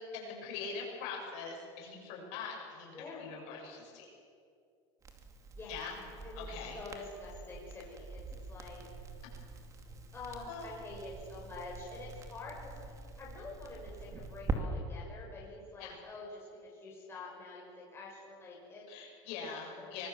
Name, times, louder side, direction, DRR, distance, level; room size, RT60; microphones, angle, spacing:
voice 1, 0.1-4.0 5.7-6.0 6.3-6.8 10.5-10.7 15.8-16.0 18.9-20.1, left 5 dB, 65° left, -1 dB, 7.7 m, -43 dB
voice 2, 2.9-3.3 5.6-5.7 6.2-6.5 6.7-8.9 10.1-18.9 19.5-20.1, left 3 dB, 20° left, -3 dB, 6.4 m, -47 dB
Crackle, 5.0-14.6, right 3 dB, 25° right, 2.5 m, -44 dB
24.5 x 21.5 x 7.4 m, 2.4 s
supercardioid pair, 145°, 13 cm